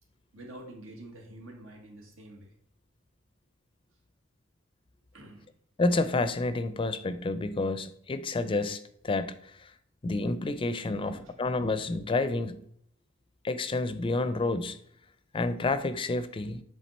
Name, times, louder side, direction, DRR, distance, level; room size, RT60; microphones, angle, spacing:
voice 1, 0.3-2.5 5.1-5.4 10.9-11.3, right 1 dB, 85° right, 1.5 m, -47 dB
voice 2, 5.8-9.7 10.0-12.6 13.4-14.8 15.3-16.6, left 2 dB, 25° left, 0.4 m, -29 dB
7.4 x 3.6 x 4.2 m
head